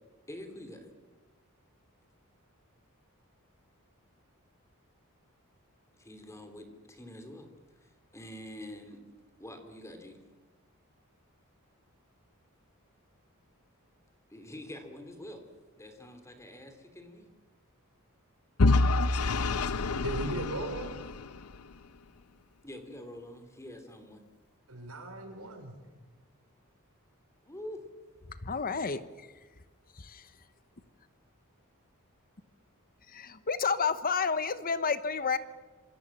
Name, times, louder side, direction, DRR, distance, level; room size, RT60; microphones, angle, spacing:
voice 1, 0.3-0.9 5.9-7.5 7.8-9.0 9.4-10.2 14.3-15.5 15.8-17.3 22.6-24.2 27.4-27.9, left 1 dB, 15° left, 3.3 m, -46 dB
Vehicle / Engine, 18.6-21.6, left 3 dB, 80° left, 0.8 m, -27 dB
voice 2, 20.0-21.0 24.7-25.8, right 2 dB, 80° right, 5.7 m, -37 dB
voice 3, 28.4-29.3 29.9-30.3 33.1-35.4, left 5 dB, 40° left, 1.1 m, -30 dB
27.0 x 24.5 x 7.4 m
head